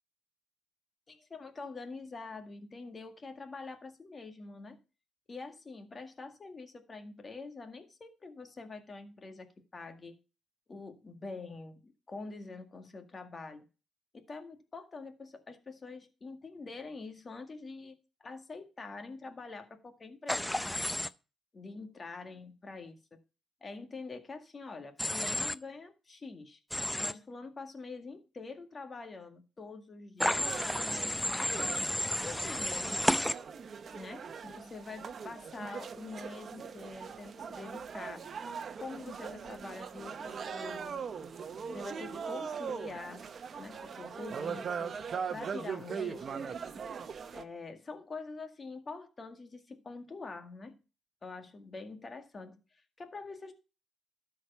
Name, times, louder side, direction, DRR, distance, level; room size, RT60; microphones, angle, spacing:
voice 1, 1.1-4.8 5.3-10.1 10.7-13.7 14.1-17.9 18.2-20.8 21.5-23.2 23.6-26.6 27.0-31.8 32.2-33.3 33.9-38.2 38.8-41.0 41.7-43.3 43.6-45.0 45.3-46.5 47.3-50.8 51.2-53.5, left 3 dB, 35° left, 6 dB, 1.9 m, -45 dB
Human voice / Train, 20.3-21.1 25.0-25.5 26.7-27.1 30.2-33.3, left 1 dB, 5° left, 0.5 m, -31 dB
sound 1, 30.3-47.4, right 6 dB, 50° right, 0.9 m, -41 dB
12.5 x 4.8 x 5.7 m, 0.32 s
cardioid pair, 90°, 0 cm